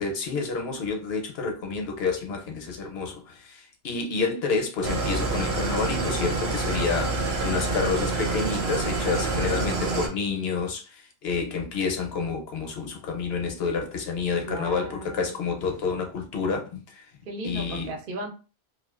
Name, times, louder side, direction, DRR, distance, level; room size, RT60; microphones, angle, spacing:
voice 1, 0.0-17.1 17.4-17.9, left 4 dB, 75° left, 0.9 m, -29 dB
Engine starting / Idling, 4.8-10.1, right 3 dB, 90° right, 0.9 m, -27 dB
voice 2, 14.5-15.3 17.3-18.3, right 2 dB, 60° right, 0.8 m, -35 dB
2.4 x 2.2 x 2.3 m
omnidirectional pair, 1.1 m